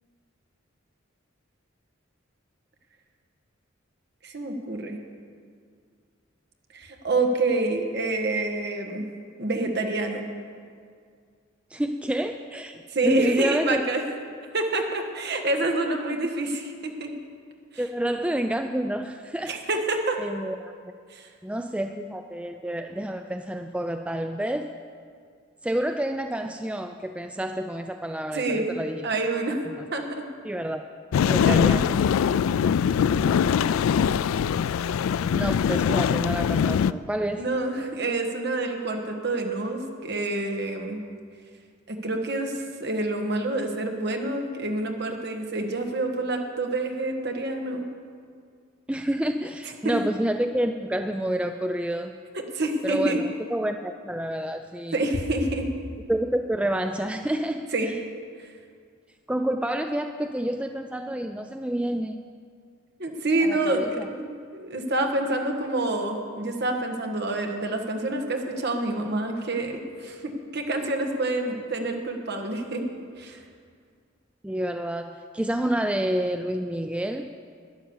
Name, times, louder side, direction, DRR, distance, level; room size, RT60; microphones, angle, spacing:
voice 1, 4.2-5.0 6.7-9.1 9.4-10.2 12.9-14.0 14.5-17.1 19.5-20.2 21.1-21.3 28.3-28.7 29.0-29.6 29.9-30.3 31.5-31.8 37.4-41.0 41.9-47.8 49.8-50.0 52.5-53.2 54.9-55.7 57.7-57.9 58.4-58.5 63.0-72.8 73.2-73.4, right 2 dB, 55° right, 3 dB, 1.5 m, -27 dB
voice 2, 11.7-13.8 17.8-19.6 20.2-20.9 21.4-24.7 25.6-29.1 29.7-29.8 30.4-30.8 31.2-32.0 35.3-37.5 48.9-52.1 52.8-55.0 56.1-57.9 59.3-62.2 63.4-64.1 74.4-77.3, right 1 dB, 5° right, 6 dB, 0.3 m, -28 dB
sound 1, 31.1-36.9, left 7 dB, 90° left, 0.3 m, -22 dB
12.0 x 10.0 x 7.2 m, 2.1 s
head